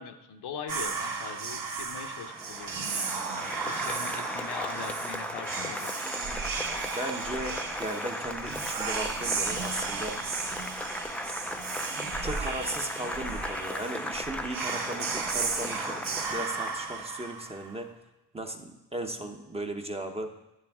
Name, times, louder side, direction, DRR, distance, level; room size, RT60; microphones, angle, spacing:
voice 1, 0.0-6.0, left 7 dB, 65° left, 6 dB, 1.0 m, -41 dB
Whispering, 0.7-17.8, right 5 dB, 50° right, 1.4 m, -35 dB
Applause, 2.3-17.1, left 1 dB, 5° left, 0.5 m, -37 dB
voice 2, 6.9-10.2 12.2-17.9 18.3-20.3, right 1 dB, 15° right, 4 dB, 0.9 m, -36 dB
10.5 x 9.7 x 3.6 m, 0.94 s
cardioid pair, 110°, 43 cm